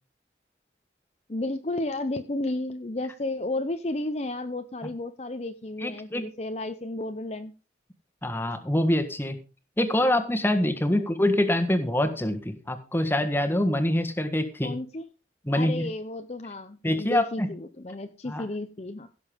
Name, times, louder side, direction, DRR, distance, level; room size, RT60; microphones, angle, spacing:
voice 1, 1.3-7.5 11.0-11.1 14.6-15.1 15.5-19.1, left 2 dB, 35° left, 8 dB, 0.8 m, -32 dB
voice 2, 5.8-6.3 8.2-9.4 9.8-14.7 15.5-15.8 16.8-17.5 18.3-18.4, left 1 dB, 10° left, 8 dB, 1.6 m, -25 dB
16.0 x 7.1 x 5.2 m, 0.33 s
head